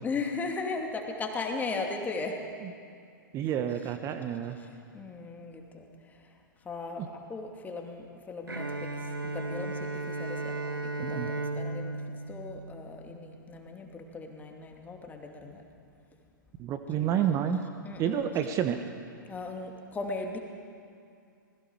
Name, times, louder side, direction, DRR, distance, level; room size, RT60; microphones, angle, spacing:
voice 1, 0.0-2.4 4.9-6.3 6.6-12.0 12.3-15.6 17.8-18.2 19.3-20.4, left 3 dB, 15° left, 2 dB, 2.5 m, -37 dB
voice 2, 3.3-4.6 7.0-7.1 11.0-11.3 16.6-17.6 18.0-18.8, right 9 dB, 30° right, 7 dB, 1.2 m, -29 dB
Bowed string instrument, 8.5-13.4, right 2 dB, 85° right, 1.7 m, -35 dB
26.5 x 20.5 x 4.8 m, 2.4 s
figure-of-eight pair, 105°, 11 cm